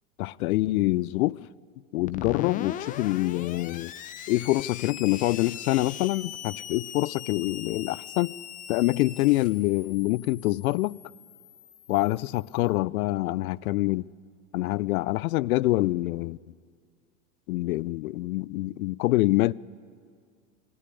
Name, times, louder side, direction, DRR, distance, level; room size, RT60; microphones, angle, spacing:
voice 1, 0.2-1.4 1.9-3.9 4.3-8.3 8.7-11.0 11.9-14.0 14.5-16.4 17.5-19.5, left 19 dB, 85° left, 0.5 m, -25 dB
Screech, 2.1-12.5, left 10 dB, 20° left, 0.5 m, -40 dB
20.5 x 13.5 x 9.9 m
supercardioid pair, 140°, 42 cm